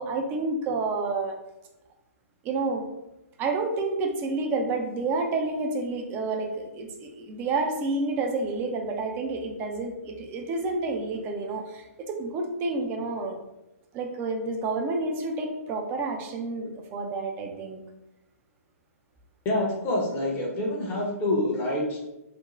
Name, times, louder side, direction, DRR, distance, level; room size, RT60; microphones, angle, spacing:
voice 1, 0.0-1.4 2.4-2.9 3.4-13.4 13.9-17.8, right 3 dB, 25° right, 3 dB, 0.4 m, -29 dB
voice 2, 19.4-22.0, left 1 dB, 25° left, -2 dB, 0.7 m, -27 dB
2.5 x 2.1 x 3.0 m, 0.94 s
figure-of-eight pair, 120°, 8 cm